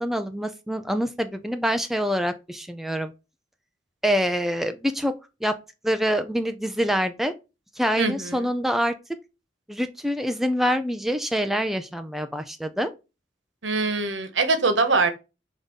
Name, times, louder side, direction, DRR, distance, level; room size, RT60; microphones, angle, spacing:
voice 1, 0.0-3.1 4.0-5.1 5.4-5.6 5.8-7.3 7.8-8.9 9.7-12.9, equal, ahead, 0.4 m, -25 dB
voice 2, 8.0-8.5 13.6-15.1, right 3 dB, 75° right, 1.1 m, -23 dB
5.3 x 3.6 x 5.4 m
head